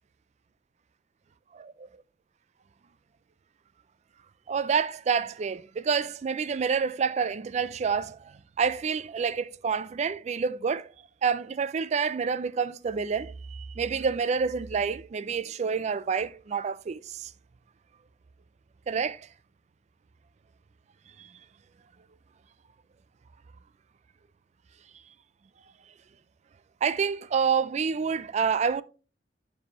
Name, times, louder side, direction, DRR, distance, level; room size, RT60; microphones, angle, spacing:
voice 1, 1.5-1.9 4.5-10.9 11.2-17.3 18.9-19.3 21.2-21.3 26.8-28.8, right 6 dB, 40° right, 0.3 m, -28 dB
9.8 x 4.8 x 2.9 m
head